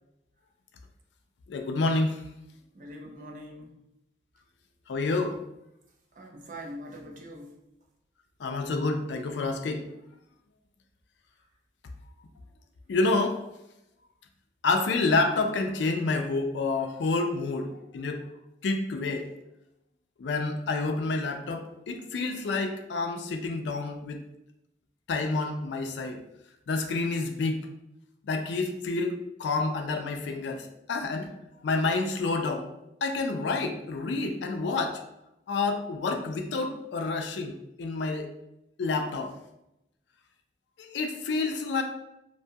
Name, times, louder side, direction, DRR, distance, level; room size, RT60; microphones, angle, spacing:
voice 1, 1.5-2.2 4.9-5.4 8.4-9.9 12.9-13.4 14.6-18.3 18.6-19.3 20.2-24.2 25.1-26.2 26.7-27.6 28.2-31.3 31.6-32.7 33.0-35.0 35.5-38.3 38.8-39.4 40.8-41.8, left 3 dB, 80° left, 5 dB, 0.4 m, -28 dB
voice 2, 2.7-3.8 6.2-7.6, equal, 45° right, 1 dB, 0.4 m, -43 dB
2.7 x 2.2 x 2.7 m, 0.86 s
head